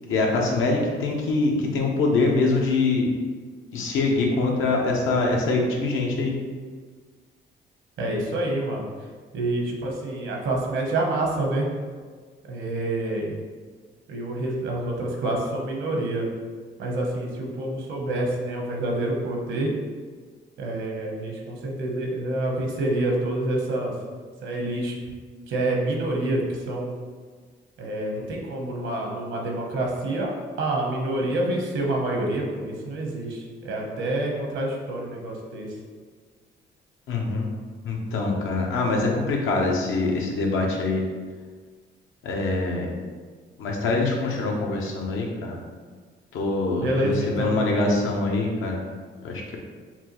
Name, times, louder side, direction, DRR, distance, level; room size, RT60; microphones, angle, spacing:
voice 1, 0.1-3.1 3.7-6.3 37.1-37.5 37.8-41.0 42.2-42.9 43.6-45.6 46.3-48.8 49.2-49.6, left 3 dB, 85° left, 0 dB, 0.8 m, -24 dB
voice 2, 8.0-8.9 9.3-11.7 12.4-13.4 14.1-16.3 16.8-19.7 20.6-23.9 24.4-24.9 25.5-26.9 27.8-30.3 30.6-35.7 46.8-47.9, right 1 dB, 80° right, -1 dB, 1.0 m, -27 dB
5.6 x 2.3 x 3.0 m, 1.5 s
cardioid pair, 90°, 20 cm